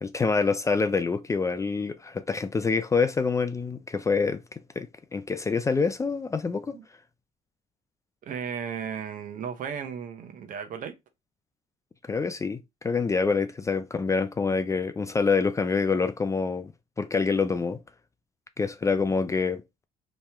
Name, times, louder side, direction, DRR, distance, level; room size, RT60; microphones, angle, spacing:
voice 1, 0.0-6.8 12.0-16.7 17.0-17.8 18.6-19.6, left 4 dB, 20° left, 0.3 m, -26 dB
voice 2, 8.2-10.9, right 7 dB, 60° right, 0.8 m, -35 dB
3.1 x 2.7 x 3.4 m
cardioid pair, 100°, 15 cm